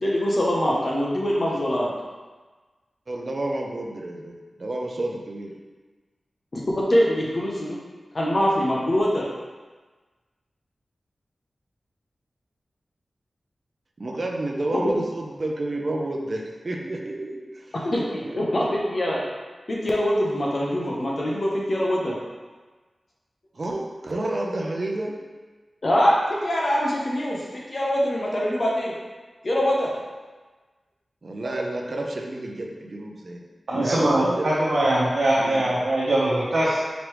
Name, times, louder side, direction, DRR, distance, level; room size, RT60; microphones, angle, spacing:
voice 1, 0.0-1.9 6.5-7.8 8.1-9.3 14.7-14.8 17.8-19.2 19.7-22.2 25.8-26.1 26.4-28.9 29.4-29.9 33.7-33.8, equal, 55° left, -4 dB, 0.8 m, -23 dB
voice 2, 3.1-5.5 14.0-17.7 18.2-18.5 23.5-25.1 31.2-33.4 33.8-34.5 35.4-35.7, right 2 dB, 55° right, 0 dB, 0.6 m, -30 dB
voice 3, 33.7-36.8, right 1 dB, 80° right, -10 dB, 0.9 m, -22 dB
5.1 x 3.2 x 3.1 m, 1.3 s
cardioid pair, 45°, 0 cm